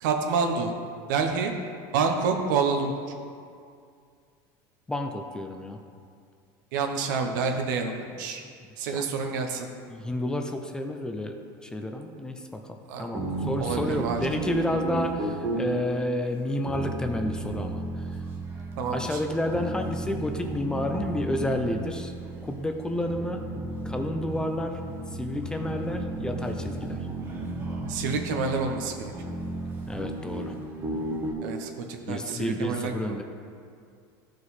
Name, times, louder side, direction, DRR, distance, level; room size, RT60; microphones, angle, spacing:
voice 1, 0.0-0.7 1.1-1.5 1.9-2.9 6.7-8.4 8.8-9.7 12.9-13.1 13.6-14.2 18.8-19.2 27.9-29.1 31.4-33.2, right 5 dB, 90° right, 4 dB, 1.1 m, -28 dB
voice 2, 4.9-5.8 8.4-8.5 8.9-9.1 9.9-18.2 18.9-22.1 22.4-23.5 23.8-24.8 25.1-27.0 29.9-30.5 32.1-33.2, left 1 dB, 10° left, 5 dB, 0.5 m, -30 dB
sound 1, 13.1-31.3, right 2 dB, 20° right, 1.0 m, -34 dB
13.0 x 4.9 x 4.2 m, 2.3 s
cardioid pair, 155°, 10 cm